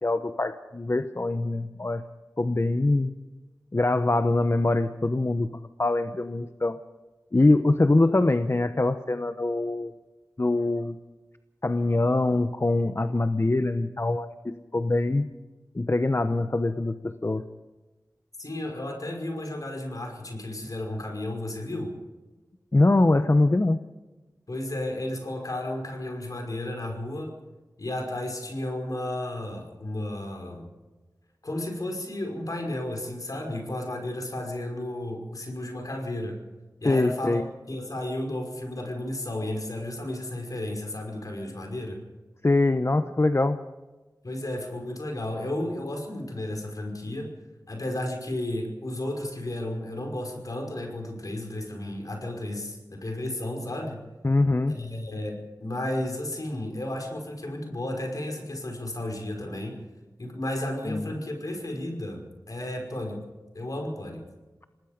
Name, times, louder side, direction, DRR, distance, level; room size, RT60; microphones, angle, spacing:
voice 1, 0.0-2.0 2.4-3.1 3.7-5.5 5.8-6.8 7.3-9.9 10.4-11.0 11.6-15.3 15.7-17.4 22.7-23.9 36.8-37.5 42.4-43.6 54.2-54.8 60.9-61.1, left 2 dB, 40° left, 9 dB, 1.0 m, -23 dB
voice 2, 18.4-21.9 24.5-27.3 27.8-30.7 31.4-36.4 36.8-37.4 37.7-42.0 44.2-47.3 47.7-54.0 54.7-59.8 60.2-63.2 63.5-64.2, left 1 dB, 60° left, 3 dB, 5.5 m, -33 dB
27.5 x 19.0 x 5.2 m, 1.2 s
wide cardioid pair, 45°, 7 cm